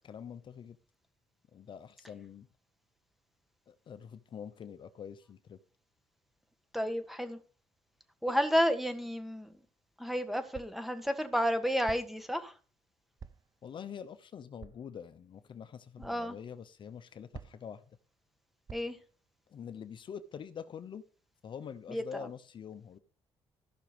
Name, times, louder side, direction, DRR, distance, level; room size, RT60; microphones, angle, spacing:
voice 1, 0.0-0.8 1.5-2.5 3.7-5.6 13.6-17.8 19.5-21.0 21.4-23.0, left 7 dB, 50° left, 0.8 m, -45 dB
voice 2, 6.7-7.4 8.2-9.5 10.0-12.5 16.0-16.4 18.7-19.0 21.9-22.3, equal, ahead, 1.6 m, -31 dB
sound 1, 9.4-9.5 10.5-10.9 11.9-12.3 13.2-13.6 14.6-14.9 16.0-16.2 17.3-17.8 18.7-19.1, right 6 dB, 35° right, 0.7 m, -49 dB
15.0 x 6.1 x 5.1 m
cardioid pair, 100°, 11 cm